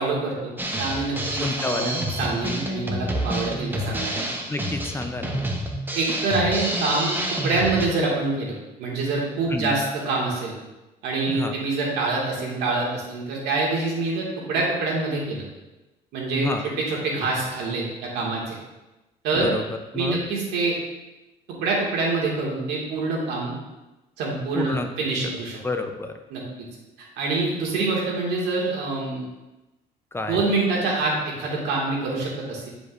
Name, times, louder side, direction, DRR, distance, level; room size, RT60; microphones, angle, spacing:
voice 1, 0.0-4.2 5.9-10.5 11.0-15.4 16.1-18.6 19.2-19.5 19.9-20.8 21.6-23.6 24.2-25.6 26.3-26.4 27.2-29.3 30.3-32.7, right 3 dB, 85° right, -3 dB, 2.0 m, -26 dB
Drum kit, 0.6-7.9, right 1 dB, 10° right, 0.9 m, -28 dB
voice 2, 1.4-2.1 4.5-5.4 9.5-9.8 11.3-11.5 16.4-16.6 19.3-19.6 19.9-20.2 24.5-24.9 25.6-26.2 30.1-30.4, left 2 dB, 15° left, 6 dB, 0.5 m, -29 dB
9.6 x 5.1 x 2.5 m, 1.0 s
cardioid pair, 110°, 17 cm